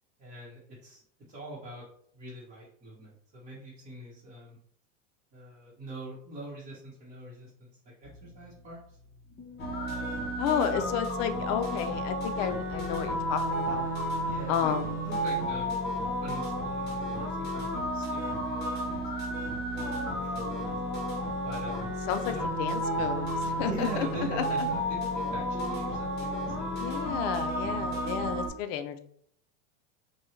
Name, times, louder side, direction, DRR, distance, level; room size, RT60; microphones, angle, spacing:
voice 1, 0.2-1.0 1.3-1.8 2.1-4.6 5.3-9.0 9.9-10.2 14.2-14.7 15.0-15.8 16.2-20.8 21.4-21.9 22.2-22.5 23.6-26.8 27.7-28.1, right 1 dB, 20° right, -7 dB, 1.1 m, -43 dB
sound 1, 8.0-11.5 12.5-16.9 17.4-26.6, equal, 5° left, 0.7 m, -50 dB
sound 2, 9.6-28.5, equal, 25° left, 1.3 m, -32 dB
voice 2, 10.4-13.9 14.5-15.1 22.1-24.7 26.7-29.0, left 8 dB, 50° left, 9 dB, 0.5 m, -32 dB
4.4 x 2.3 x 3.1 m, 0.64 s
supercardioid pair, 130°, 38 cm